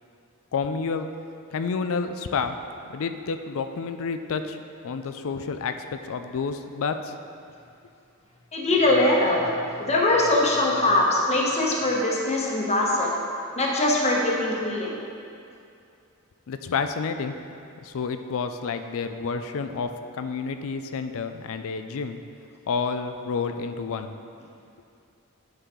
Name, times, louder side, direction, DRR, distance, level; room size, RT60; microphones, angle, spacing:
voice 1, 0.5-1.1 1.5-2.6 2.9-4.6 4.8-7.1 16.5-17.3 17.8-19.9 20.2-22.2 22.7-24.1, left 5 dB, 65° left, 8 dB, 0.4 m, -29 dB
voice 2, 8.5-13.1 13.6-15.0, left 2 dB, 30° left, -2 dB, 1.1 m, -22 dB
9.4 x 6.3 x 3.8 m, 2.5 s
head